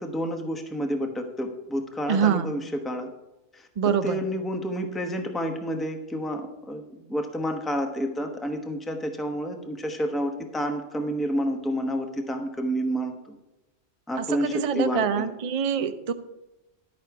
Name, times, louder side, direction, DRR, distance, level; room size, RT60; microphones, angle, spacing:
voice 1, 0.0-3.1 3.5-6.8 7.1-13.4 14.1-15.3 15.8-15.9, equal, ahead, 4 dB, 0.9 m, -29 dB
voice 2, 2.1-2.5 3.8-4.2 14.2-16.1, right 7 dB, 40° right, 9 dB, 0.6 m, -25 dB
11.5 x 8.5 x 4.7 m, 0.97 s
omnidirectional pair, 1.2 m